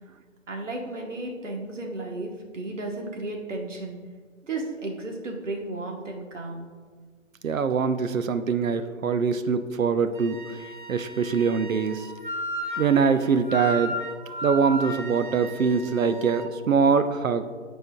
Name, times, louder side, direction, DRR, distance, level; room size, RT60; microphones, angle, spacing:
voice 1, 0.5-4.0 4.4-6.7, right 2 dB, 65° right, 1 dB, 1.4 m, -34 dB
voice 2, 7.4-10.4 10.9-12.1 12.8-14.0 14.4-17.5, right 5 dB, 85° right, 10 dB, 0.7 m, -23 dB
Wind instrument woodwind instrument, 10.1-16.5, equal, 40° right, 0.5 m, -35 dB
13.0 x 4.4 x 2.3 m, 1.5 s
hypercardioid pair, 165°, 39 cm